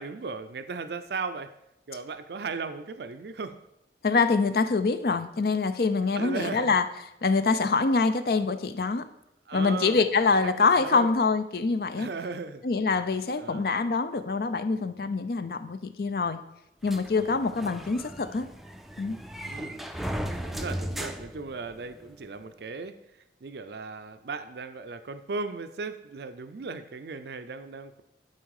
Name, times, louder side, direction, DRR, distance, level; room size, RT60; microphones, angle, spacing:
voice 1, 0.0-1.5 1.9-3.6 6.1-6.8 9.5-10.1 10.4-11.1 12.0-12.6 13.4-13.7 17.2-17.4 19.4-19.8 20.4-28.0, right 4 dB, 65° right, 10 dB, 0.5 m, -37 dB
voice 2, 4.0-6.8 7.2-9.0 9.5-12.1 12.6-16.4 16.8-18.5 19.0-19.2, left 4 dB, 55° left, 11 dB, 0.5 m, -25 dB
sound 1, 16.9-22.1, equal, ahead, 0.4 m, -36 dB
11.5 x 4.4 x 4.8 m, 0.84 s
head